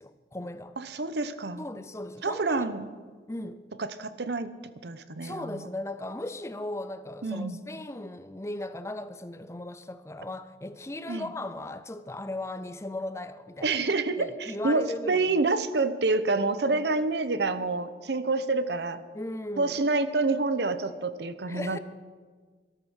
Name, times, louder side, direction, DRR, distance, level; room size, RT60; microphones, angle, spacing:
voice 1, 0.0-0.8 1.6-2.8 3.3-3.7 5.2-13.8 14.2-15.5 19.1-19.8 21.5-21.8, left 1 dB, 15° left, 0.5 m, -37 dB
voice 2, 0.8-1.6 2.2-2.9 3.8-4.5 4.8-5.7 7.2-7.6 11.1-11.3 13.6-19.0 19.6-21.8, right 3 dB, 70° right, 0.8 m, -28 dB
13.5 x 12.5 x 6.4 m
head